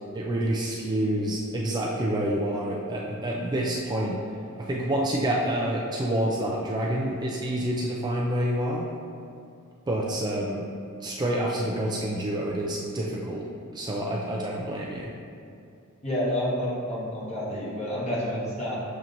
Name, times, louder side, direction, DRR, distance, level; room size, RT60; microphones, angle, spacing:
voice 1, 0.1-4.2 4.6-8.9 9.9-10.7 11.0-13.5 13.7-15.1, right 1 dB, 20° right, -3 dB, 0.3 m, -28 dB
voice 2, 16.0-18.8, equal, 30° left, -7 dB, 1.2 m, -29 dB
7.0 x 2.9 x 2.5 m, 2.5 s
head